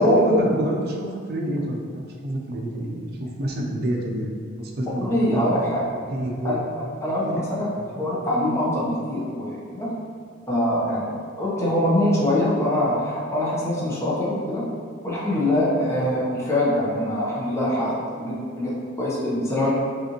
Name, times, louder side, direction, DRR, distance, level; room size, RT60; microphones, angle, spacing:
voice 1, 0.0-5.5 6.1-6.6 7.2-7.4 7.7-8.1, right 1 dB, 50° right, -1 dB, 0.6 m, -28 dB
voice 2, 4.9-5.8 6.4-9.9 10.5-14.7 15.0-19.7, left 1 dB, 15° left, -7 dB, 0.8 m, -24 dB
5.4 x 2.5 x 2.9 m, 2.3 s
head